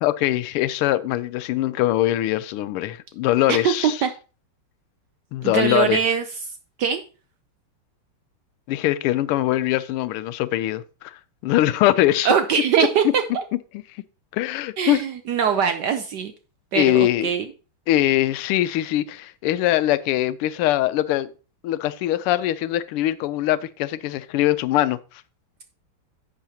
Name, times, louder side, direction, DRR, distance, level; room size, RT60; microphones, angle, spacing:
voice 1, 0.0-4.0 5.3-6.0 8.7-12.3 13.0-13.1 14.3-15.0 16.7-17.3 17.9-21.3 21.6-25.0, left 14 dB, 90° left, 1.5 m, -22 dB
voice 2, 3.5-4.1 5.4-6.2 6.8-7.0 12.2-13.4 14.8-16.3 16.7-17.5, right 7 dB, 75° right, 1.0 m, -22 dB
10.5 x 7.7 x 2.8 m
omnidirectional pair, 2.4 m